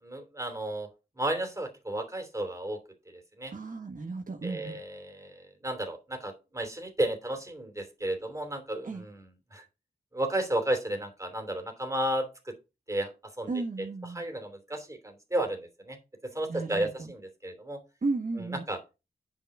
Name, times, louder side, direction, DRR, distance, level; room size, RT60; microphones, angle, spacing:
voice 1, 0.0-0.9 1.2-2.8 3.1-3.5 4.4-9.6 10.1-12.5 12.9-13.1 13.4-13.5 13.8-13.9 14.1-16.0 16.2-17.8 18.4-18.8, right 1 dB, 20° right, 5 dB, 3.0 m, -33 dB
voice 2, 3.5-4.8 8.8-9.0 13.5-14.2 16.5-17.1 18.0-18.6, right 3 dB, 55° right, 2 dB, 1.3 m, -34 dB
9.6 x 5.9 x 4.9 m, 0.28 s
wide cardioid pair, 85°, 17 cm